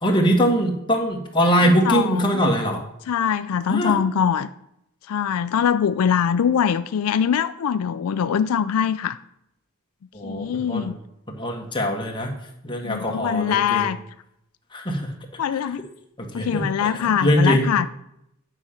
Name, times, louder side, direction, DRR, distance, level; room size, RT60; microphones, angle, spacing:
voice 1, 0.0-2.8 3.7-3.9 10.1-10.9 11.3-12.3 12.6-13.8 14.7-15.1 16.2-16.9 17.2-17.7, equal, 20° left, 1 dB, 1.5 m, -22 dB
voice 2, 1.6-2.4 3.1-4.5 5.1-9.2 10.2-11.0 12.8-14.0 15.4-15.8 16.3-17.9, left 8 dB, 80° left, 12 dB, 0.4 m, -23 dB
9.7 x 5.0 x 5.7 m, 0.79 s
head